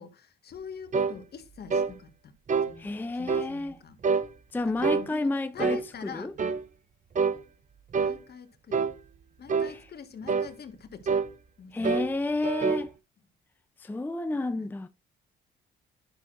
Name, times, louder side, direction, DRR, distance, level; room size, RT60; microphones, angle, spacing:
voice 1, 0.0-2.3 2.7-4.0 4.7-6.3 7.2-7.3 8.0-8.8 9.4-11.1 11.6-11.9 14.6-14.7, left 6 dB, 55° left, 1.6 m, -45 dB
sound 1, 0.9-1.2 1.7-1.9 2.5-2.7 3.3-3.5 4.0-4.3 4.8-5.1 5.6-5.8 6.4-6.6 7.1-7.4 7.9-8.2 8.7-9.0 9.5-9.7 10.3-10.5 11.1-11.3 11.8-12.1 12.4-12.9, right 5 dB, 40° right, 0.8 m, -26 dB
voice 2, 2.8-3.8 4.5-6.3 9.6-9.9 11.7-12.9 13.8-14.9, left 2 dB, 10° left, 0.5 m, -31 dB
11.0 x 6.2 x 2.5 m
cardioid pair, 90°, 20 cm